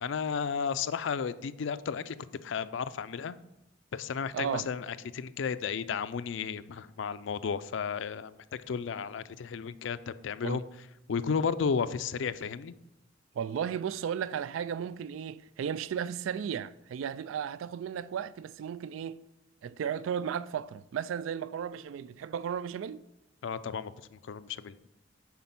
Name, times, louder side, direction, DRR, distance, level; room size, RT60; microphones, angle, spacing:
voice 1, 0.0-2.2 2.4-3.4 3.9-8.3 8.7-10.6 11.1-12.7 23.4-24.7, left 6 dB, 65° left, 0.4 m, -33 dB
voice 2, 4.3-4.7 10.4-10.6 13.4-19.2 19.6-23.0, right 8 dB, 80° right, 0.3 m, -34 dB
9.4 x 4.4 x 5.8 m
head